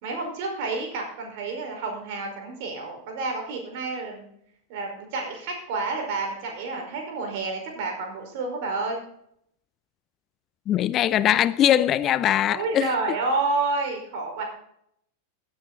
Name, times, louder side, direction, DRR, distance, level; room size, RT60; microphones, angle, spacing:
voice 1, 0.0-4.3 4.7-9.0 12.5-14.4, right 3 dB, 50° right, 5.2 m, -29 dB
voice 2, 10.7-12.9, left 11 dB, 30° left, 0.4 m, -21 dB
16.5 x 9.8 x 4.2 m
figure-of-eight pair, 90°, 0 cm